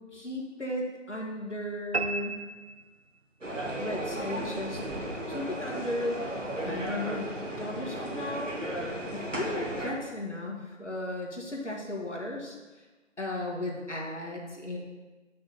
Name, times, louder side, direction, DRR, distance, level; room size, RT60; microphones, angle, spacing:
voice 1, 0.0-2.4 3.8-4.8 5.3-6.2 6.6-7.3 7.6-8.5 9.1-12.6 13.2-14.8, left 1 dB, 70° left, -1 dB, 1.8 m, -35 dB
sound 1, 1.9-3.5, right 3 dB, 55° right, 0.6 m, -34 dB
sound 2, 3.4-9.9, right 1 dB, 85° right, 1.7 m, -35 dB
7.2 x 6.2 x 4.1 m, 1.2 s
figure-of-eight pair, 165°, 37 cm